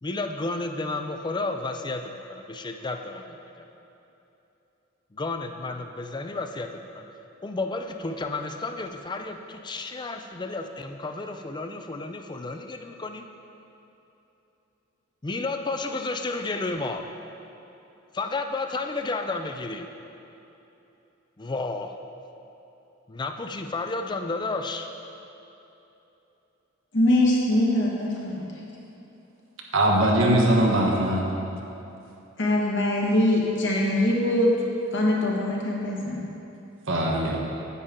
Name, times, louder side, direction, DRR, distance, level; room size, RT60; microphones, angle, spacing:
voice 1, 0.0-3.7 5.1-7.0 7.4-13.3 15.2-17.1 18.1-19.9 21.4-21.9 23.1-24.9, left 3 dB, 25° left, 6 dB, 0.5 m, -32 dB
voice 2, 26.9-28.5 32.4-34.5 34.9-36.2, left 1 dB, 65° left, -3 dB, 1.6 m, -23 dB
voice 3, 29.7-31.2 36.9-37.4, right 1 dB, 90° right, -1 dB, 1.3 m, -21 dB
9.8 x 8.4 x 3.8 m, 3.0 s
head